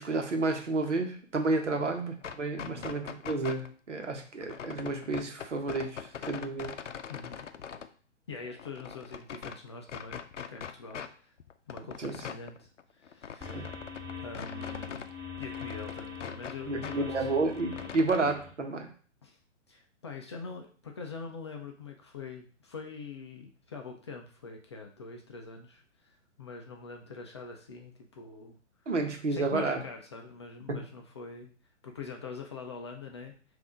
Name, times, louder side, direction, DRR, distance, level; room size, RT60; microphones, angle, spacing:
voice 1, 0.0-6.7 12.0-12.2 13.5-13.7 16.7-18.9 28.9-29.8 30.7-30.9, right 3 dB, 75° right, 4 dB, 1.0 m, -31 dB
sound 1, 2.1-3.7 4.4-7.9 8.3-9.6 9.9-11.1 11.4-15.1 15.4-17.0 17.3-18.2, left 7 dB, 75° left, 0.5 m, -42 dB
voice 2, 7.1-7.5 8.3-10.2 10.5-11.3 11.7-13.7 14.2-15.1 15.4-17.1 17.7-18.0 19.2-19.4 19.7-28.6 29.3-31.5 31.8-33.3, left 4 dB, 25° left, 2 dB, 0.4 m, -44 dB
sound 2, 13.4-18.5, left 6 dB, 15° right, 1.4 m, -42 dB
5.4 x 2.6 x 3.6 m, 0.42 s
figure-of-eight pair, 120°, 36 cm